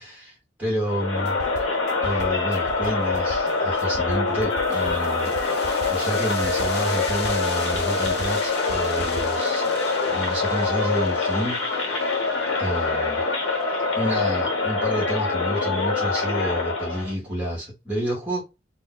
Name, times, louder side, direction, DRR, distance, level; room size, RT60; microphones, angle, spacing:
voice 1, 0.0-1.4 2.0-5.3 5.9-9.6 10.1-12.2 12.6-13.2 14.0-18.4, equal, 10° right, 1.0 m, -29 dB
Crowd, 0.8-17.1, left 3 dB, 85° left, 1.0 m, -25 dB
sound 1, 1.2-9.2, right 3 dB, 60° right, 0.4 m, -39 dB
sound 2, 4.5-15.8, left 5 dB, 55° left, 0.8 m, -39 dB
2.5 x 2.1 x 3.8 m
head